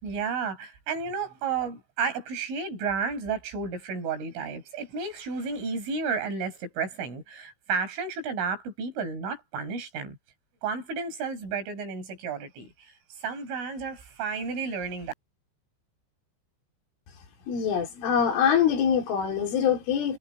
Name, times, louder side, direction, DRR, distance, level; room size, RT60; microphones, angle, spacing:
voice 1, 0.0-10.2 10.6-15.1, right 5 dB, 90° right, 8.3 m, -32 dB
voice 2, 17.5-20.2, left 8 dB, 80° left, 6.5 m, -24 dB
omnidirectional pair, 5.5 m